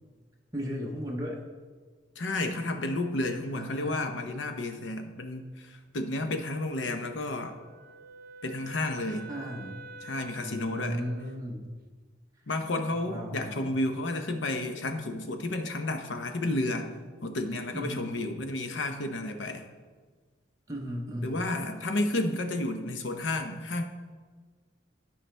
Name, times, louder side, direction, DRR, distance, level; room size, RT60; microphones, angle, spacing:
voice 1, 0.5-1.4 3.5-4.0 9.1-9.8 10.4-11.7 13.1-13.8 17.7-18.1 20.7-21.4, equal, 20° right, -2 dB, 0.8 m, -36 dB
voice 2, 2.2-7.5 8.4-9.3 10.0-11.0 12.5-16.9 17.2-19.6 21.2-23.8, left 2 dB, 70° left, 6 dB, 0.8 m, -31 dB
Wind instrument woodwind instrument, 7.4-11.4, right 3 dB, 50° right, 0.5 m, -47 dB
12.0 x 4.9 x 3.3 m, 1.5 s
head